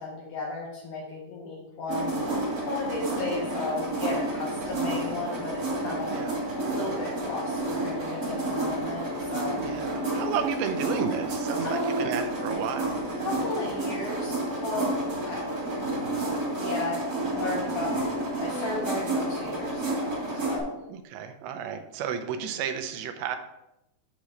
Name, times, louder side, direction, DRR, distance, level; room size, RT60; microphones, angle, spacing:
voice 1, 0.0-6.2 6.5-9.7 11.6-12.0 13.2-15.0 15.2-15.4 16.5-18.0 18.4-20.7, left 3 dB, 70° left, -2 dB, 2.0 m, -35 dB
sound 1, 1.9-20.6, right 1 dB, 45° right, 1.2 m, -30 dB
voice 2, 9.6-12.9 20.9-23.4, right 7 dB, 90° right, 6 dB, 3.0 m, -32 dB
8.5 x 3.1 x 6.3 m, 0.89 s
omnidirectional pair, 4.9 m